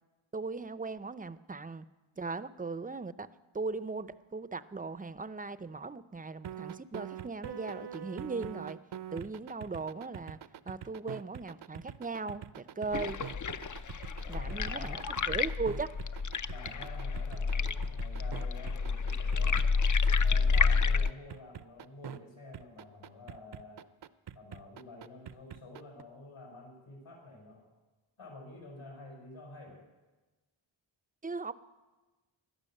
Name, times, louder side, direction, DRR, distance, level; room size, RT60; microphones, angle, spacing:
voice 1, 0.3-1.8 2.2-3.3 3.5-8.8 9.1-10.4 10.7-13.2 14.3-15.9 31.2-31.5, right 4 dB, 15° right, 15 dB, 0.6 m, -38 dB
sound 1, 6.4-22.2 22.5-26.0, right 9 dB, 55° right, 0.7 m, -44 dB
sound 2, 12.9-21.1, left 5 dB, 40° left, 0.6 m, -30 dB
voice 2, 14.2-15.1 16.4-19.7 20.2-23.8 24.3-27.7 28.2-29.8, left 2 dB, 70° left, -2 dB, 6.4 m, -49 dB
16.5 x 11.5 x 6.6 m, 1.2 s
wide cardioid pair, 75°, 49 cm